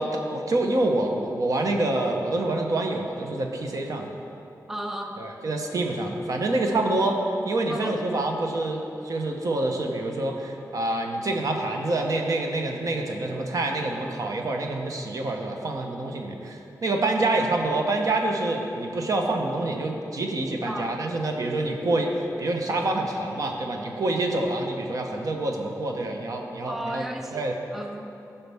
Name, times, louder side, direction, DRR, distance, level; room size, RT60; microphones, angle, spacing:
voice 1, 0.0-4.1 5.2-7.2 7.4-27.0 27.3-27.5, right 2 dB, 55° right, 2 dB, 0.9 m, -27 dB
voice 2, 4.7-5.3 7.7-8.0 20.6-20.9 26.7-28.0, right 1 dB, 5° right, 4 dB, 0.4 m, -34 dB
14.5 x 5.6 x 3.5 m, 2.9 s
wide cardioid pair, 165°, 7 cm